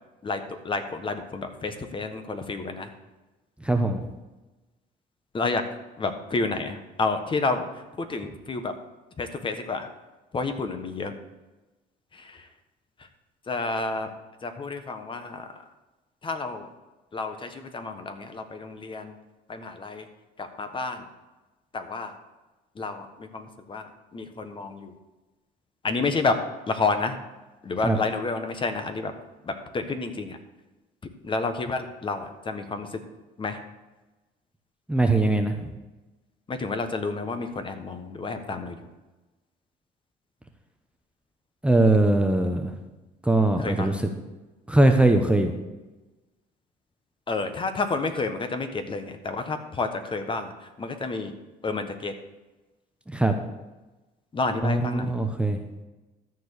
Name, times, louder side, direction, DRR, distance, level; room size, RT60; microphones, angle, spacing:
voice 1, 0.2-2.9 5.3-5.6 6.0-8.7 9.2-9.9 10.3-11.1 12.1-12.5 13.5-14.1 14.4-15.6 16.2-16.7 17.1-19.2 19.5-20.1 20.4-21.1 21.7-22.1 22.7-24.9 25.8-27.2 27.6-29.1 29.4-30.4 31.2-33.0 33.4-33.6 36.5-38.8 43.6-43.9 47.3-51.3 51.6-52.1 54.3-55.1, left 3 dB, 30° left, 7 dB, 1.3 m, -30 dB
voice 2, 3.6-4.1 27.8-28.0 34.9-35.7 41.6-42.7 43.2-44.0 44.7-45.5 53.1-53.3 54.6-55.6, right 2 dB, 5° right, 5 dB, 0.9 m, -21 dB
13.0 x 4.6 x 8.1 m, 1.1 s
cardioid pair, 110°, 17 cm